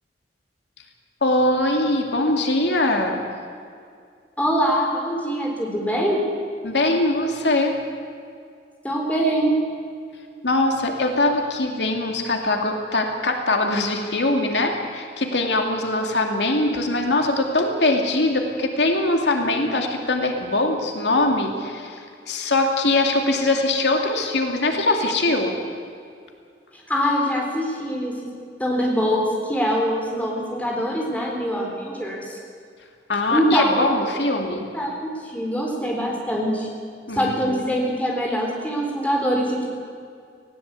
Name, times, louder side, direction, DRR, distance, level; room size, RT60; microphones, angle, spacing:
voice 1, 1.2-3.2 6.6-7.7 10.4-25.5 33.1-34.7 37.1-37.7, left 2 dB, 85° left, 3 dB, 2.4 m, -22 dB
voice 2, 4.4-6.2 8.8-9.5 26.9-28.3 28.6-32.4 33.3-33.8 34.7-36.7 37.1-39.6, equal, 10° left, -1 dB, 3.9 m, -23 dB
19.5 x 17.0 x 8.3 m, 2.3 s
head